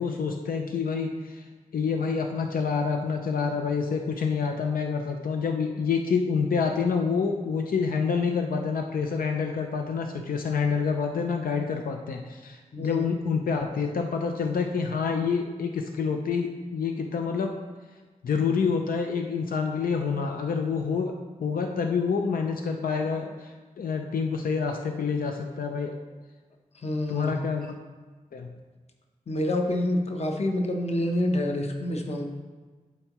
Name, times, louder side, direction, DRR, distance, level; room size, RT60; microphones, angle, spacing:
voice 1, 0.0-17.5 18.2-25.9 27.1-27.8 28.3-28.5, left 5 dB, 85° left, 4 dB, 0.5 m, -27 dB
voice 2, 12.7-13.0 26.8-27.3 29.3-32.2, left 1 dB, 50° left, 2 dB, 0.9 m, -27 dB
11.5 x 4.5 x 3.0 m, 1.3 s
wide cardioid pair, 130°, 14 cm